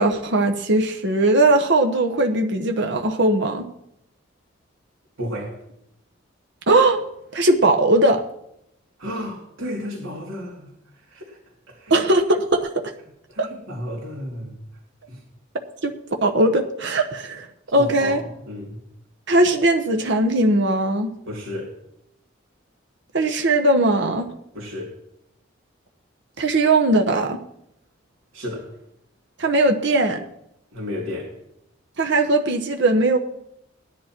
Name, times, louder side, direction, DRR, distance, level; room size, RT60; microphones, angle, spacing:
voice 1, 0.0-3.7 6.7-7.0 7.3-8.2 11.9-12.9 13.4-13.5 15.8-16.0 16.2-17.5 17.7-18.2 19.3-21.1 23.1-24.2 26.4-27.4 29.4-30.2 32.0-33.2, right 2 dB, 60° right, 4 dB, 1.1 m, -19 dB
voice 2, 5.2-5.6 9.0-10.7 11.0-11.4 11.7-12.0 13.3-14.5 15.1-15.2 17.7-18.8 21.3-21.7 24.5-25.0 28.3-28.7 30.7-31.3, left 1 dB, 80° right, -3 dB, 2.9 m, -32 dB
17.5 x 10.5 x 4.5 m, 0.79 s
head